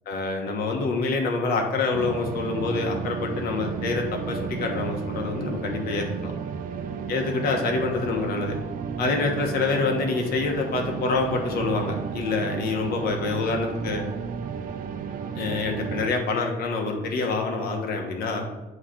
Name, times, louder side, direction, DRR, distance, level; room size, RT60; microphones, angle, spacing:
voice 1, 0.1-6.3 7.1-8.5 9.0-14.0 15.3-18.5, left 3 dB, 75° left, 2 dB, 1.3 m, -26 dB
sound 1, 1.9-16.1, right 6 dB, 60° right, 0.6 m, -33 dB
8.0 x 3.3 x 5.8 m, 1.1 s
cardioid pair, 135°, 16 cm